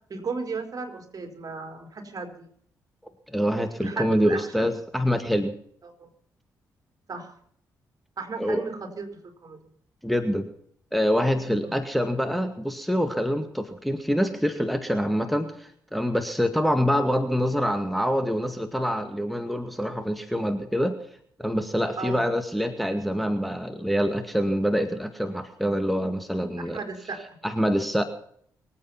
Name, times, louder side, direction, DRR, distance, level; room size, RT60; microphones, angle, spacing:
voice 1, 0.1-2.5 3.8-4.7 5.8-6.1 7.1-7.3 8.2-9.1 9.4-9.6 11.6-11.8 22.0-22.3 26.7-27.4, right 4 dB, 50° right, 6 dB, 4.6 m, -35 dB
voice 2, 3.3-5.5 8.4-8.6 10.0-10.5 10.9-21.0 21.4-26.8 27.4-28.0, equal, ahead, 7 dB, 2.1 m, -25 dB
24.5 x 8.8 x 5.8 m, 0.62 s
supercardioid pair, 55°, 8 cm